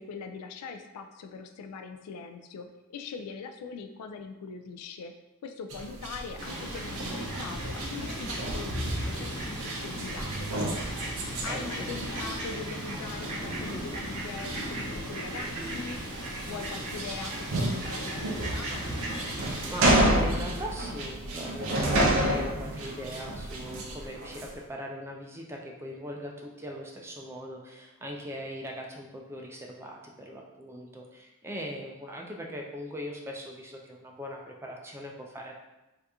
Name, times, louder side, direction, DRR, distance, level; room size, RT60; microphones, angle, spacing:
voice 1, 0.0-5.1 5.4-10.8 11.4-16.0 16.5-18.7, left 5 dB, 90° left, 7 dB, 0.3 m, -41 dB
sound 1, 5.7-24.5, right 1 dB, 65° right, 0.5 m, -32 dB
Fowl, 6.4-20.0, right 1 dB, 80° right, 1.0 m, -36 dB
voice 2, 11.5-12.0 19.3-35.5, equal, 10° right, 0 dB, 0.3 m, -40 dB
2.8 x 2.4 x 3.4 m, 1.0 s
head